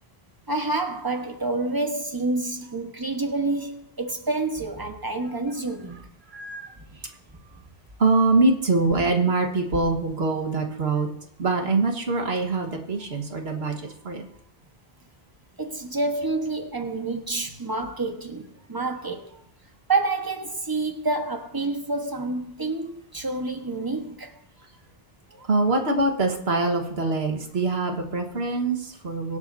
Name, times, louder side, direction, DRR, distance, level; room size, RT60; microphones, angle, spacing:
voice 1, 0.5-6.1 9.0-9.1 15.6-19.3 19.9-24.3, right 3 dB, 20° right, 1.3 m, -28 dB
voice 2, 6.3-6.7 8.0-11.1 11.4-14.2 25.4-29.4, right 3 dB, 80° right, 1.8 m, -24 dB
24.0 x 8.2 x 2.7 m
omnidirectional pair, 1.1 m